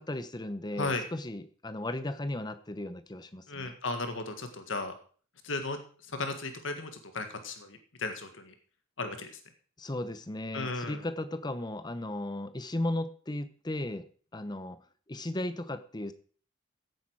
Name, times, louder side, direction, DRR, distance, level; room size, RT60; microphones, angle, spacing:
voice 1, 0.0-3.7 9.8-14.1 14.3-14.8 15.1-16.1, left 1 dB, 20° left, 12 dB, 0.8 m, -36 dB
voice 2, 3.5-4.9 5.4-5.8 6.1-8.5 9.0-9.3 10.5-11.0, left 3 dB, 75° left, 7 dB, 1.7 m, -35 dB
15.0 x 8.5 x 4.7 m, 0.43 s
head